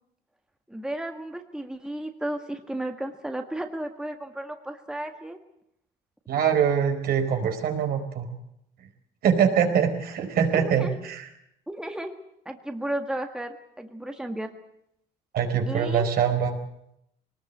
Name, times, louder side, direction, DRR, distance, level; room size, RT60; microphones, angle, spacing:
voice 1, 0.7-5.4 10.5-11.0 11.7-12.1 12.5-14.5 15.7-16.1, right 1 dB, 5° right, 5 dB, 1.7 m, -33 dB
voice 2, 6.3-8.3 9.2-11.3 15.3-16.6, right 7 dB, 65° right, 5 dB, 4.5 m, -23 dB
22.0 x 19.5 x 8.4 m, 0.77 s
cardioid pair, 110°, 17 cm